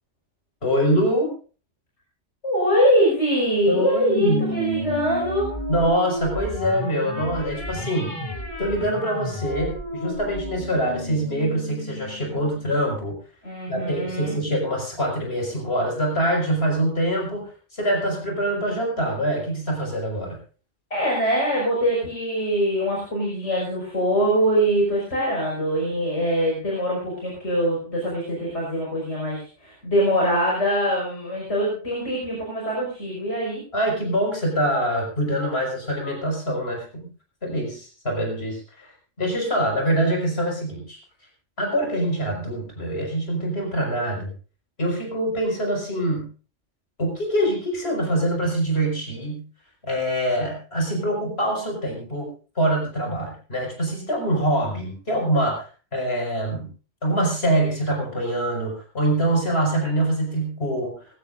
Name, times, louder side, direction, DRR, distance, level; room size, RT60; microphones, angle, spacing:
voice 1, 0.6-1.3 3.7-4.9 5.7-8.1 8.6-13.1 13.7-20.4 33.7-37.1 37.4-38.9 39.2-41.0 41.6-44.3 44.8-46.3 47.0-49.4 49.8-52.3 52.6-55.7 55.9-56.7 57.0-60.9, right 1 dB, 60° left, 1 dB, 5.9 m, -24 dB
voice 2, 2.4-5.5 13.4-14.3 20.9-33.6, equal, 75° left, -3 dB, 6.0 m, -23 dB
sound 1, 4.1-12.9, left 1 dB, 30° left, 3.0 m, -32 dB
22.0 x 15.5 x 2.6 m, 0.37 s
omnidirectional pair, 1.2 m